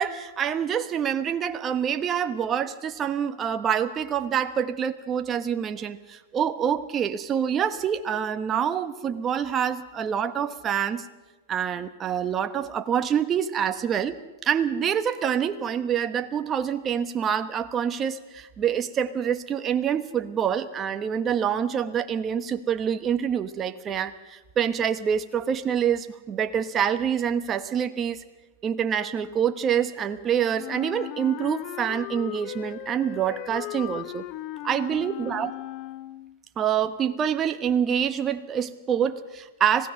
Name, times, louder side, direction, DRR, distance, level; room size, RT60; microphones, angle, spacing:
voice 1, 0.0-11.0 11.5-14.2 14.4-28.2 28.6-34.2 34.6-35.5 36.6-39.9, right 8 dB, 25° right, 9 dB, 1.2 m, -26 dB
Wind instrument woodwind instrument, 30.5-36.4, left 16 dB, 40° left, 0.8 m, -37 dB
26.0 x 16.5 x 6.5 m, 1.2 s
hypercardioid pair, 125°, 0 cm